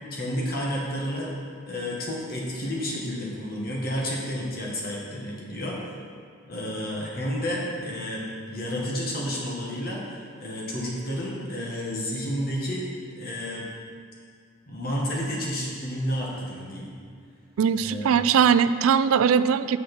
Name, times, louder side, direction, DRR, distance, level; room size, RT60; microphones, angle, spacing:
voice 1, 0.1-1.3 1.7-5.8 6.5-10.0 10.4-13.7 14.7-16.9 17.8-18.1, equal, 45° left, -3 dB, 1.6 m, -31 dB
voice 2, 17.6-19.8, right 7 dB, 90° right, 14 dB, 0.3 m, -20 dB
7.0 x 6.3 x 6.1 m, 2.2 s
head